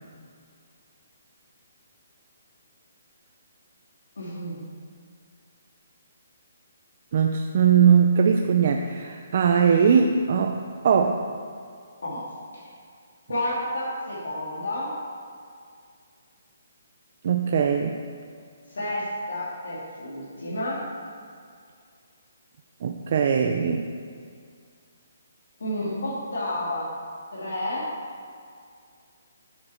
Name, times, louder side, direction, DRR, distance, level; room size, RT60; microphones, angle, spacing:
voice 1, 4.2-4.6 12.0-12.2 12.5-12.7 13.3-15.0 18.7-20.9 25.6-26.9 27.3-27.9, left 1 dB, 90° left, -7 dB, 2.7 m, -30 dB
voice 2, 7.1-11.3 17.2-18.0 22.8-23.9, right 7 dB, 40° right, 3 dB, 0.4 m, -20 dB
10.5 x 7.1 x 4.3 m, 2.2 s
hypercardioid pair, 175°, 0 cm